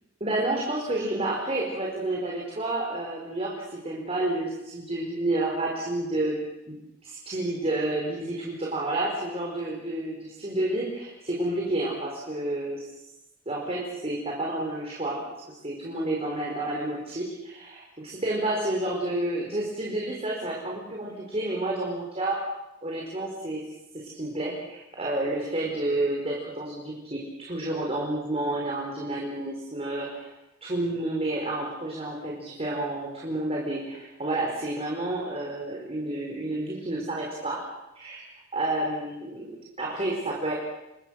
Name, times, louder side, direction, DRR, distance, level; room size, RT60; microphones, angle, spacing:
voice 1, 0.2-6.4 6.7-6.8 7.0-12.9 13.4-15.2 15.6-22.4 22.8-23.6 23.9-30.3 30.6-37.6 37.9-40.5, right 2 dB, 30° right, -3 dB, 4.8 m, -30 dB
27.5 x 24.0 x 6.5 m, 0.93 s
head